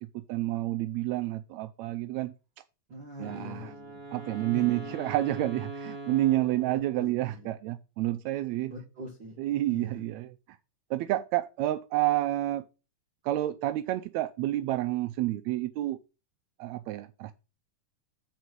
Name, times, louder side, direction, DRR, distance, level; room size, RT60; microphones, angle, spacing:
voice 1, 0.1-2.3 3.2-3.7 4.1-8.7 9.4-10.6 10.9-12.6 13.2-16.0 16.6-17.3, right 15 dB, 85° right, 1.6 m, -29 dB
voice 2, 2.9-4.0 4.5-4.8 6.9-7.5 8.7-9.4 9.7-10.0, equal, 40° right, 2.3 m, -43 dB
Wind instrument woodwind instrument, 3.1-7.3, right 2 dB, 10° right, 2.1 m, -42 dB
8.1 x 4.5 x 5.9 m
omnidirectional pair, 3.7 m